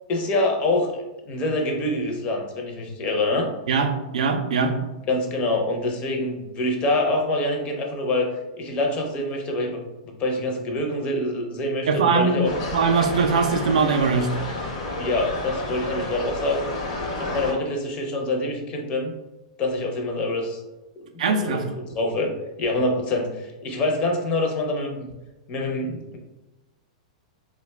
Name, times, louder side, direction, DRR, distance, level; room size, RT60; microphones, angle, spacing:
voice 1, 0.1-0.9 1.3-3.5 5.1-8.3 8.6-12.5 15.0-16.7 17.2-19.1 19.6-20.6 21.3-22.3 22.6-25.1 25.5-26.2, left 2 dB, 30° left, 2 dB, 0.5 m, -25 dB
voice 2, 3.7-4.7 11.9-14.3 21.2-21.6, right 5 dB, 80° right, 5 dB, 0.4 m, -21 dB
sound 1, 12.4-17.5, left 2 dB, 70° left, 0.8 m, -30 dB
2.4 x 2.1 x 3.2 m, 1.0 s
hypercardioid pair, 140°, 4 cm